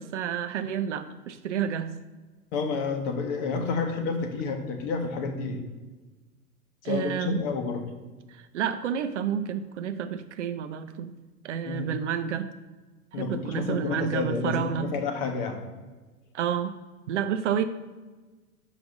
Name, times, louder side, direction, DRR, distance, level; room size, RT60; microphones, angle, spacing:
voice 1, 0.0-1.9 6.8-7.4 8.3-11.1 11.4-12.5 13.1-14.9 16.3-16.8 17.1-17.6, right 8 dB, 50° right, 10 dB, 0.5 m, -30 dB
voice 2, 2.5-5.6 6.8-7.8 11.7-11.9 13.1-15.6, left 4 dB, 40° left, 5 dB, 1.1 m, -30 dB
5.8 x 5.0 x 3.7 m, 1.3 s
figure-of-eight pair, 110°, 46 cm